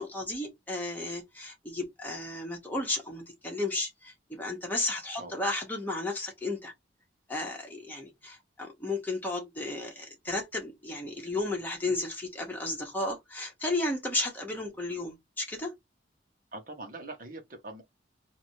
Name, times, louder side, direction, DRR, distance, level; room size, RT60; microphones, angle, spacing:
voice 1, 0.0-6.7 7.3-15.7, left 2 dB, 10° left, 1.4 m, -33 dB
voice 2, 16.5-17.8, right 2 dB, 45° right, 1.3 m, -42 dB
3.9 x 2.9 x 3.2 m
head